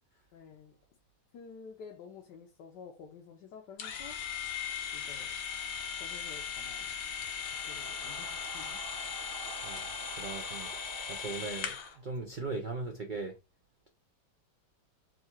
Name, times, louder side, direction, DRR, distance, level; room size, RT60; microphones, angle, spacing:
voice 1, 0.3-0.8 1.3-4.2 4.9-5.4 6.0-6.9 7.6-8.8, left 6 dB, 80° left, 1.4 m, -50 dB
sound 1, 3.8-12.0, left 8 dB, 65° left, 1.0 m, -38 dB
sound 2, 6.2-12.4, right 6 dB, 65° right, 0.8 m, -50 dB
voice 2, 9.6-10.7 11.1-13.3, right 3 dB, 85° right, 0.4 m, -39 dB
3.7 x 2.4 x 4.3 m
omnidirectional pair, 1.8 m